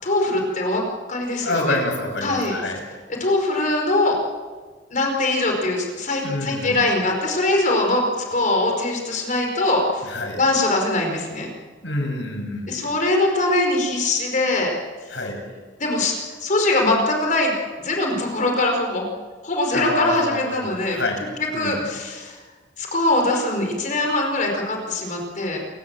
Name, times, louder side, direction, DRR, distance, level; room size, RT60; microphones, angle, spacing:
voice 1, 0.0-0.8 1.1-1.8 2.2-2.5 3.2-4.2 4.9-11.5 12.7-14.7 15.8-17.5 17.8-19.1 19.4-21.0 21.5-22.4 22.8-25.6, left 2 dB, 45° left, 2 dB, 4.9 m, -22 dB
voice 2, 1.4-2.8 6.2-6.8 10.0-10.4 11.8-12.8 15.1-15.4 19.7-21.2 21.5-21.8, left 2 dB, 80° left, 3 dB, 6.7 m, -27 dB
28.5 x 17.0 x 7.6 m, 1.4 s
head